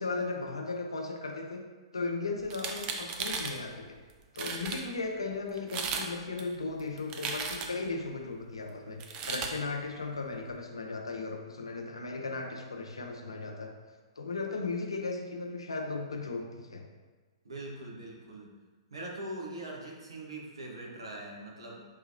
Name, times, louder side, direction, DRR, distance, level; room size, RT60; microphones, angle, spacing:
voice 1, 0.0-1.6 1.9-3.9 4.3-9.0 9.3-13.7 14.2-16.8, left 3 dB, 70° left, 3 dB, 0.5 m, -36 dB
sound 1, 2.4-3.6 4.1-4.2 4.4-4.8 5.6-6.1 6.4-7.9 9.0-9.5, right 5 dB, 25° right, 0.3 m, -35 dB
voice 2, 17.4-18.5 18.9-21.9, right 1 dB, 70° right, -2 dB, 0.9 m, -42 dB
4.8 x 2.8 x 2.5 m, 1.4 s
figure-of-eight pair, 115°, 3 cm